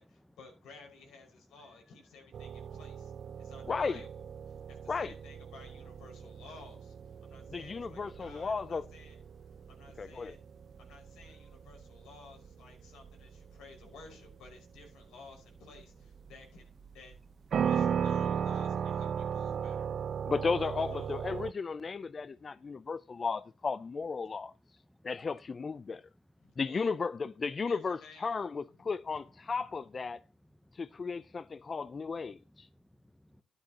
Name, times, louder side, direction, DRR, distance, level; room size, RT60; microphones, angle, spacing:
voice 1, 0.0-3.1 3.4-9.2 9.7-10.4 10.8-16.7 16.9-17.1 17.6-19.9 20.6-21.1 26.4-26.9 27.7-28.3, left 4 dB, 85° left, 5.3 m, -55 dB
sound 1, 2.3-21.5, right 7 dB, 55° right, 0.4 m, -37 dB
voice 2, 3.7-4.0 4.9-5.1 7.5-8.9 10.0-10.4 20.3-24.5 25.0-26.0 26.6-30.2 30.7-32.7, left 4 dB, 35° left, 0.4 m, -34 dB
voice 3, 7.2-7.6 9.5-9.7 10.1-10.9 13.5-13.6 20.2-20.3 22.1-22.2 22.7-22.8 24.9-25.1 30.6-30.8 31.6-31.7 32.5-33.4, left 1 dB, 5° left, 0.8 m, -65 dB
12.5 x 11.0 x 2.9 m
cardioid pair, 90°, 0 cm